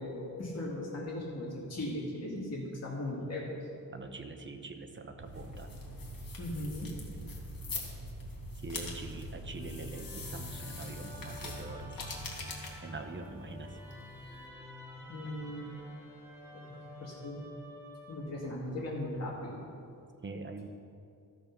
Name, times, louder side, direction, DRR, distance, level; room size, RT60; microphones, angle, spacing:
voice 1, 0.0-3.6 6.4-6.9 15.1-15.7 16.5-17.4 18.1-19.6, left 1 dB, 45° left, -5 dB, 2.1 m, -38 dB
voice 2, 3.9-5.7 8.6-12.0 12.8-13.8 20.2-20.7, right 3 dB, 35° right, 6 dB, 0.8 m, -44 dB
sound 1, 5.2-12.4, right 1 dB, 80° right, 1.2 m, -45 dB
sound 2, 5.3-14.5, left 4 dB, 70° left, 1.8 m, -46 dB
Musical instrument, 9.4-18.6, left 1 dB, 5° right, 1.9 m, -49 dB
13.5 x 7.0 x 5.9 m, 2.5 s
wide cardioid pair, 155°, 35 cm